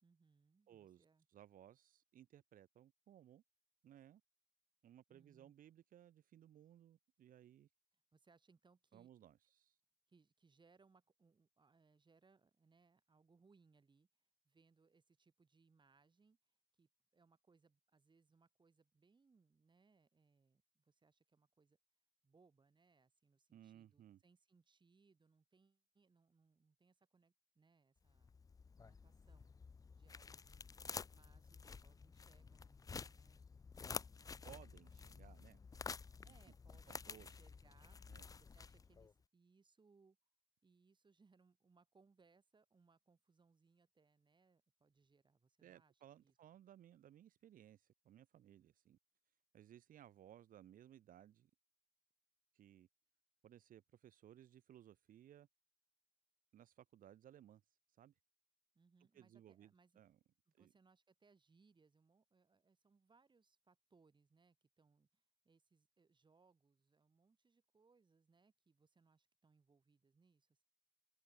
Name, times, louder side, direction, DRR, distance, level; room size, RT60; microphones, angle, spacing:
voice 1, 0.0-1.3 5.1-5.5 8.1-9.1 10.1-21.8 22.2-28.4 28.8-29.5 30.0-30.8 31.1-33.5 33.9-34.5 35.3-35.4 36.2-40.2 40.6-46.4 58.7-60.0 60.5-70.6, right 4 dB, 35° right, 1.9 m, -73 dB
voice 2, 0.7-3.4 3.8-4.2 4.8-7.7 8.9-9.8 23.5-24.2 34.4-35.6 36.3-36.4 36.9-37.3 38.1-38.3 45.6-49.0 49.5-51.5 52.5-52.9 53.4-55.5 56.5-57.6 58.0-58.1 59.1-60.2 60.6-60.7, right 11 dB, 75° right, 1.2 m, -62 dB
sound 1, 28.1-39.1, left 5 dB, 25° left, 0.3 m, -51 dB
cardioid pair, 70°, 14 cm